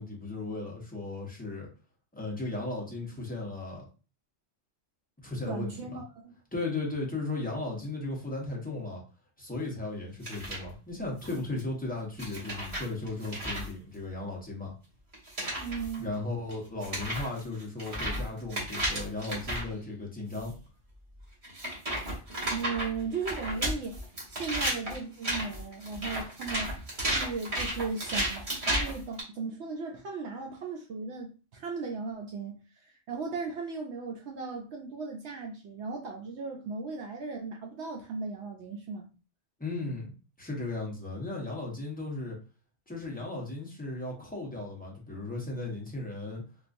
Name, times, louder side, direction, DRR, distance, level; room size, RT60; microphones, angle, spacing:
voice 1, 0.0-1.7 2.1-3.8 5.2-6.0 6.5-9.0 9.4-14.7 16.0-20.5 39.6-40.1 40.4-42.4 42.9-46.4, left 2 dB, 10° left, 0.8 m, -36 dB
voice 2, 5.5-6.4 15.6-16.1 22.5-39.1, right 4 dB, 75° right, 0.8 m, -37 dB
sound 1, 10.2-10.6 11.2-11.6 12.2-13.7 15.1-16.0 16.5-16.6 16.8-19.7 20.3-20.5 21.4-29.2, right 1 dB, 30° right, 1.3 m, -33 dB
3.6 x 2.4 x 2.5 m
omnidirectional pair, 1.2 m